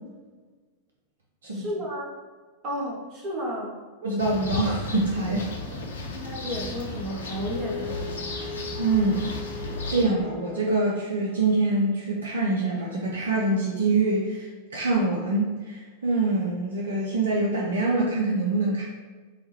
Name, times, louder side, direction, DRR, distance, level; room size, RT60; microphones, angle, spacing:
voice 1, 1.5-2.1 2.6-3.8 6.1-8.1, equal, 35° right, -3 dB, 1.0 m, -32 dB
voice 2, 4.0-5.5 8.8-9.3 9.6-18.9, right 2 dB, 70° right, -2 dB, 0.5 m, -25 dB
sound 1, 4.2-10.0, left 2 dB, 65° left, 0.5 m, -34 dB
Wind instrument woodwind instrument, 7.3-11.8, left 4 dB, 30° left, 0.7 m, -39 dB
4.7 x 2.2 x 3.0 m, 1.4 s
figure-of-eight pair, 90°, 0 cm